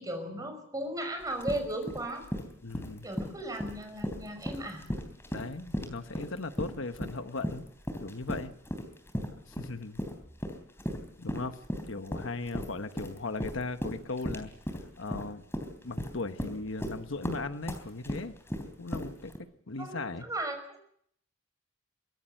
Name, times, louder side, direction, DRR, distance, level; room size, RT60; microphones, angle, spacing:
voice 1, 0.0-2.2 3.0-4.8 9.8-10.1 19.8-20.8, right 1 dB, 20° right, 5 dB, 5.5 m, -36 dB
sound 1, 1.2-19.4, equal, 15° left, 3.6 m, -36 dB
voice 2, 2.6-3.1 5.3-7.6 8.0-8.5 9.5-10.0 11.2-11.6 11.9-14.5 15.0-15.5 15.8-18.3 18.8-19.3 19.7-20.3, left 3 dB, 75° left, 9 dB, 1.2 m, -37 dB
24.0 x 17.5 x 7.8 m, 0.68 s
head